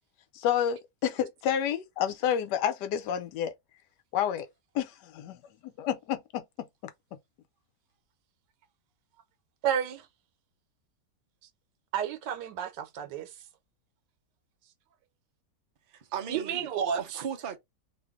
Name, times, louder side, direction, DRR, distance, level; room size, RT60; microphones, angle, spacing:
voice 1, 0.3-3.5 4.1-4.5 4.7-5.4 5.8-6.4, left 9 dB, 80° left, 1.2 m, -29 dB
voice 2, 9.6-10.1 11.9-13.4 16.3-17.2, right 8 dB, 90° right, 1.3 m, -31 dB
voice 3, 15.9-16.7 17.0-17.6, right 8 dB, 70° right, 0.5 m, -36 dB
2.8 x 2.5 x 3.5 m
omnidirectional pair, 1.8 m